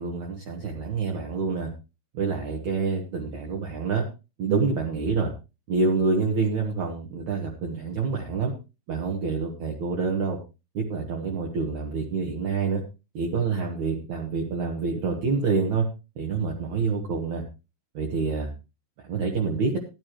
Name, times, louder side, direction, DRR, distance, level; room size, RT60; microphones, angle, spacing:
voice 1, 0.0-1.7 2.1-4.0 4.4-5.3 5.7-8.5 8.9-10.4 10.7-12.8 13.1-15.9 16.2-17.4 17.9-18.5 19.0-19.8, right 4 dB, 60° right, 0 dB, 2.4 m, -27 dB
14.0 x 11.0 x 3.1 m, 0.28 s
omnidirectional pair, 4.6 m